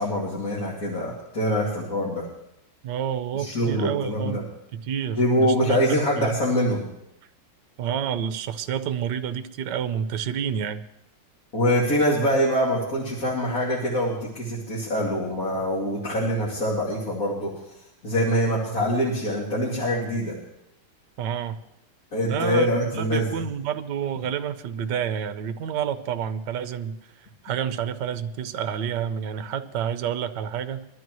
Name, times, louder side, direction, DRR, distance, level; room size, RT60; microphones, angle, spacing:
voice 1, 0.0-2.2 3.3-4.4 5.1-6.8 11.5-17.5 18.0-20.3 22.1-23.4, equal, 40° left, -5 dB, 2.9 m, -24 dB
voice 2, 2.8-5.8 6.2-6.4 7.8-10.8 21.2-21.6 22.2-27.0 27.4-30.9, right 8 dB, 65° right, 10 dB, 1.3 m, -29 dB
23.0 x 13.0 x 3.1 m, 0.84 s
omnidirectional pair, 2.3 m